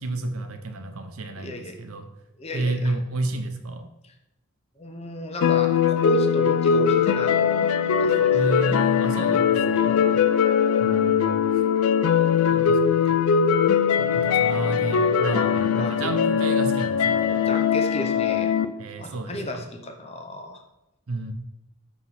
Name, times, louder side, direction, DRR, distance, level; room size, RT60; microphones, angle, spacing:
voice 1, 0.0-2.1 2.5-3.8 8.3-10.0 10.8-11.5 12.5-12.8 13.0-13.2 14.0-17.5 18.8-19.6 21.1-21.3, right 2 dB, 75° right, 6 dB, 0.7 m, -31 dB
voice 2, 1.4-1.8 2.4-2.9 4.0-4.1 4.8-7.6 8.0-8.5 10.0-10.2 15.7-16.1 16.4-16.5 17.3-18.5 19.0-20.6, left 1 dB, 30° left, 4 dB, 0.6 m, -34 dB
sound 1, 5.4-18.7, left 7 dB, 85° left, 0.4 m, -21 dB
5.8 x 3.1 x 5.7 m, 0.91 s
head